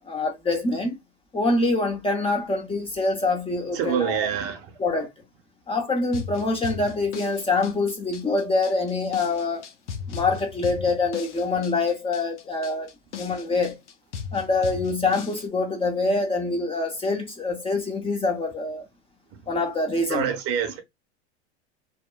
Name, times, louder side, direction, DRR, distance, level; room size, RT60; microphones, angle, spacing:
voice 1, 0.1-1.0 1.3-4.3 4.8-5.1 5.7-9.6 10.1-12.9 13.2-13.8 14.3-18.9 19.5-20.3, left 3 dB, 15° left, 0.7 m, -25 dB
voice 2, 3.7-4.7 20.1-20.8, right 8 dB, 40° right, 0.7 m, -26 dB
sound 1, 6.1-15.5, left 6 dB, 85° left, 0.7 m, -38 dB
2.8 x 2.1 x 2.2 m
hypercardioid pair, 100°, 34 cm